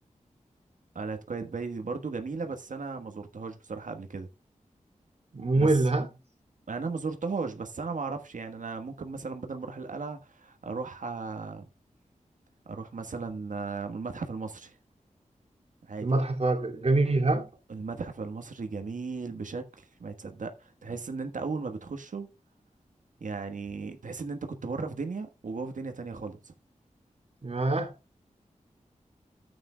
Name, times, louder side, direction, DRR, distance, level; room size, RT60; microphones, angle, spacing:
voice 1, 0.9-4.3 5.5-5.8 6.7-11.6 12.6-14.7 15.9-16.1 17.7-22.3 23.2-26.5, right 4 dB, 80° right, 1.4 m, -36 dB
voice 2, 5.3-6.1 16.0-17.5 27.4-27.9, right 2 dB, 50° right, 2.5 m, -25 dB
13.5 x 8.7 x 2.3 m
wide cardioid pair, 90°, 13 cm